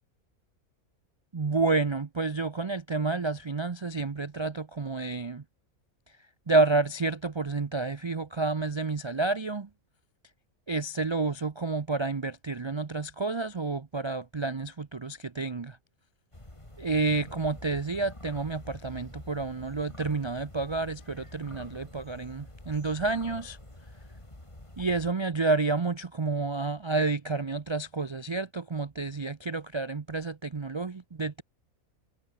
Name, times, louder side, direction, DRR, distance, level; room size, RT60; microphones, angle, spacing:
voice 1, 1.3-5.4 6.5-9.7 10.7-15.8 16.8-23.6 24.8-31.4, right 3 dB, 45° right, 0.3 m, -29 dB
sound 1, 16.3-25.1, left 1 dB, 20° left, 3.7 m, -47 dB
omnidirectional pair, 1.5 m